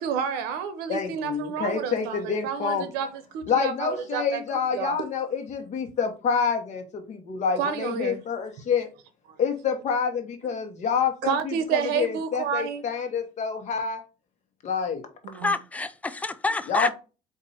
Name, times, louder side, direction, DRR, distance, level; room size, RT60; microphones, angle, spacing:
voice 1, 0.0-4.4 4.7-5.0 7.6-8.2 11.2-12.8 15.2-15.5, right 7 dB, 85° right, 0.6 m, -30 dB
voice 2, 0.9-2.8 3.5-8.9 9.4-14.0 14.6-15.0 16.7-16.9, left 6 dB, 50° left, 1.1 m, -27 dB
voice 3, 15.4-16.9, left 3 dB, 10° left, 0.3 m, -27 dB
4.3 x 2.6 x 4.1 m
cardioid pair, 115°, 16 cm